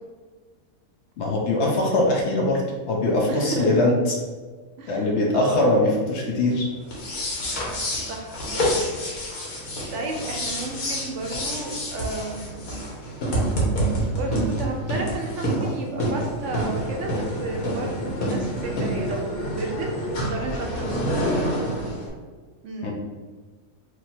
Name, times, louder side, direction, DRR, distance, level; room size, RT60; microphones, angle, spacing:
voice 1, 1.2-2.6 2.9-3.9 4.9-6.7 22.8-22.9, left 2 dB, 60° left, -1 dB, 0.8 m, -21 dB
voice 2, 3.3-3.7 4.8-5.7 8.1-8.6 9.9-12.8 14.1-20.9 22.6-22.9, right 2 dB, 70° right, 1 dB, 0.8 m, -33 dB
sound 1, 6.8-22.1, right 1 dB, 85° left, 1.4 m, -27 dB
3.0 x 2.7 x 4.1 m, 1.4 s
omnidirectional pair, 1.5 m